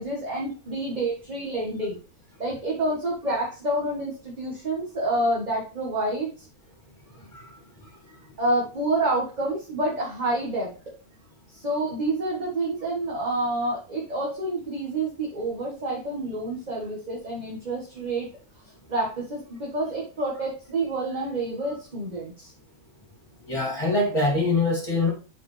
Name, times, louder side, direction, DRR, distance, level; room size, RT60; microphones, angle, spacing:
voice 1, 0.0-2.0 2.4-6.5 8.4-10.9 11.5-18.3 18.9-22.5, right 2 dB, 30° right, 1.6 m, -28 dB
voice 2, 23.5-25.1, left 2 dB, 20° left, 2.7 m, -23 dB
8.4 x 4.9 x 3.3 m
omnidirectional pair, 1.6 m